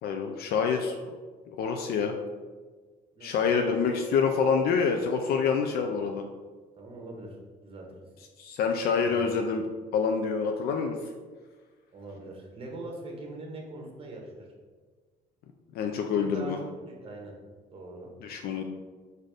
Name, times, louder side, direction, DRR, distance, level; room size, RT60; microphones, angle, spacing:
voice 1, 0.0-1.1 1.6-2.2 3.2-6.2 8.4-9.6 9.9-11.0 15.7-16.6 18.2-18.6, left 5 dB, 65° left, 4 dB, 0.4 m, -27 dB
voice 2, 6.8-7.4 7.6-8.0 9.0-9.5 11.9-14.5 16.1-17.3 17.7-18.1, right 2 dB, 35° right, 0 dB, 1.1 m, -42 dB
4.1 x 2.6 x 4.8 m, 1.4 s
cardioid pair, 110°, 17 cm